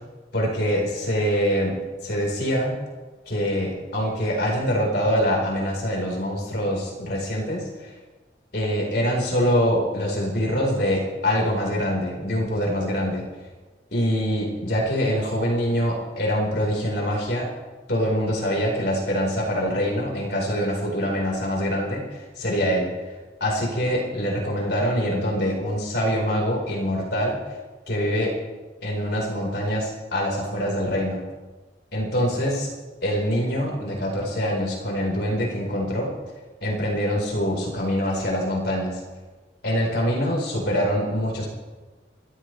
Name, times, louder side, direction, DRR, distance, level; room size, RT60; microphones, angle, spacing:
voice 1, 0.3-2.8 3.3-7.9 8.5-13.2 13.9-17.5 17.9-22.9 23.4-27.4 27.9-28.4 28.8-31.2 31.9-32.7 33.0-36.1 36.6-39.0 39.6-41.5, equal, 60° left, -2 dB, 4.4 m, -24 dB
28.5 x 14.0 x 3.3 m, 1.3 s
head